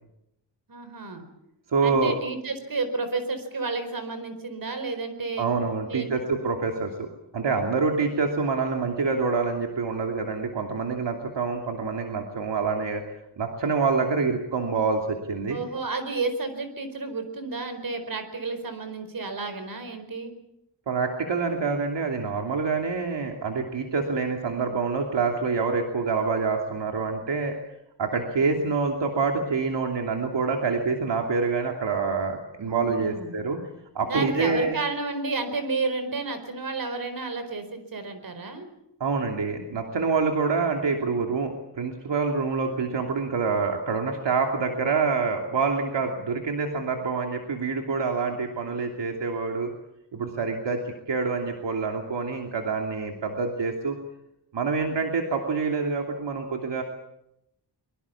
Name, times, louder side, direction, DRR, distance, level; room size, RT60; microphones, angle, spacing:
voice 1, 0.7-1.2 1.8-5.5 5.9-6.1 15.5-20.3 32.6-33.4 34.1-38.7, right 3 dB, 50° right, 9 dB, 4.6 m, -31 dB
voice 2, 1.7-2.1 5.4-7.1 7.3-13.0 13.4-15.6 20.9-27.6 28.0-33.6 33.9-34.8 39.0-49.7 50.1-54.0 54.5-56.8, right 4 dB, 70° right, 2 dB, 3.0 m, -26 dB
23.5 x 23.5 x 7.2 m, 0.83 s
wide cardioid pair, 155°, 44 cm